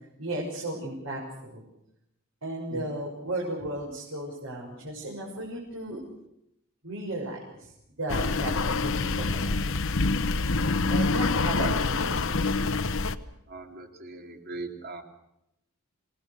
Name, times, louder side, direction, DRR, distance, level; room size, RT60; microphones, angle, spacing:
voice 1, 0.2-1.6 2.4-6.0 6.8-7.7 8.0-8.7 9.0-9.7 10.9-12.2, right 1 dB, 70° right, -3 dB, 6.3 m, -35 dB
sound 1, 8.1-13.2, left 3 dB, 65° left, 1.0 m, -26 dB
voice 2, 13.5-15.0, right 3 dB, 50° right, 2 dB, 3.4 m, -40 dB
27.5 x 19.0 x 6.7 m, 0.82 s
head